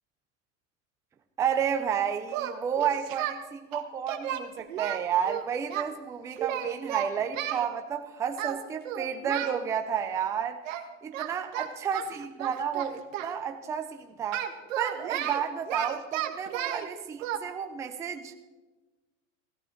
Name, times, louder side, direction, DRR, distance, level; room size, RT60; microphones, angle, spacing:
voice 1, 1.4-10.6 11.0-14.4 14.8-18.3, right 8 dB, 10° right, 5 dB, 0.4 m, -31 dB
Singing, 2.3-3.4 3.7-5.9 6.4-7.7 8.4-8.6 8.8-9.6 10.7-10.9 11.1-13.3 14.3-16.9 17.2-17.4, right 11 dB, 75° right, 1.6 m, -33 dB
15.0 x 15.0 x 4.5 m, 1.1 s
supercardioid pair, 155°, 39 cm